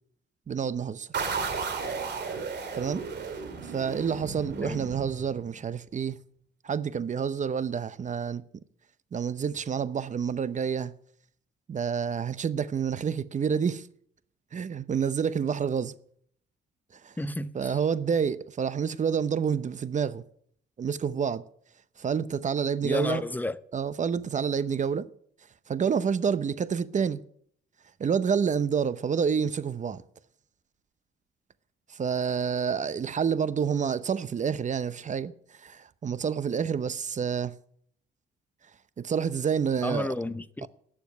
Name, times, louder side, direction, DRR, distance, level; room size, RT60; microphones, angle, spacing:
voice 1, 0.5-1.1 2.7-3.0 3.6-6.2 6.6-8.4 9.1-10.9 11.7-13.9 14.5-15.9 17.0-17.1 17.5-20.2 20.8-21.4 22.0-23.3 23.7-25.1 25.7-27.2 28.0-30.0 31.9-35.3 35.6-37.5 39.0-40.1, right 7 dB, 40° right, 0.7 m, -28 dB
sound 1, 1.1-5.7, right 5 dB, 60° right, 2.5 m, -34 dB
voice 2, 17.2-17.8 22.8-23.6 39.8-40.7, left 1 dB, 10° left, 0.7 m, -32 dB
12.0 x 7.1 x 9.3 m
cardioid pair, 90°, 20 cm